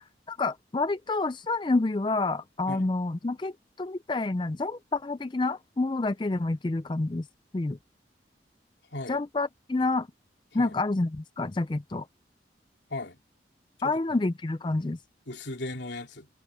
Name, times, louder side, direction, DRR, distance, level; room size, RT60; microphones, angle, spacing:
voice 1, 0.0-7.3 7.5-7.8 9.1-10.1 10.5-12.1 13.8-15.0, left 2 dB, 25° left, 0.4 m, -28 dB
voice 2, 13.8-14.2 15.3-16.3, left 2 dB, 80° left, 3.2 m, -37 dB
head